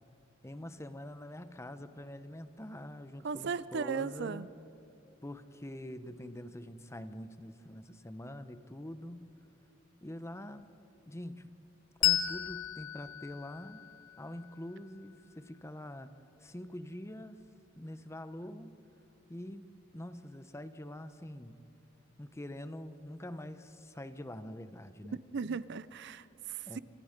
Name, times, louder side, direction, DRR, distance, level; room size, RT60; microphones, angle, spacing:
voice 1, 0.4-4.5 5.2-9.3 10.0-10.7 11.0-11.5 12.0-13.8 14.2-16.1 16.4-17.4 17.8-18.7 19.3-19.7 19.9-21.6 22.2-25.6 26.7-26.8, left 1 dB, 15° left, 11 dB, 0.8 m, -45 dB
voice 2, 3.2-4.5 25.3-26.8, right 5 dB, 60° right, 17 dB, 0.5 m, -37 dB
Bell, 12.0-15.1, left 14 dB, 80° left, 1.4 m, -34 dB
28.0 x 27.5 x 5.2 m, 2.8 s
head